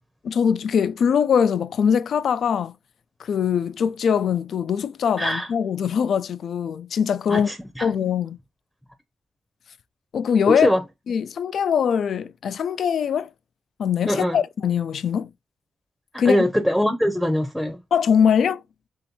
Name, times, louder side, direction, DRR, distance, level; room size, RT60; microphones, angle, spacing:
voice 1, 0.2-2.7 3.2-7.5 7.8-8.4 10.1-10.7 11.1-13.3 13.8-15.3 16.2-16.4 17.9-18.6, left 7 dB, 70° left, 0.3 m, -22 dB
voice 2, 5.2-5.5 7.3-7.9 10.5-10.8 14.1-14.4 16.1-17.8, equal, ahead, 0.7 m, -22 dB
3.0 x 2.8 x 4.1 m
cardioid pair, 65°, 0 cm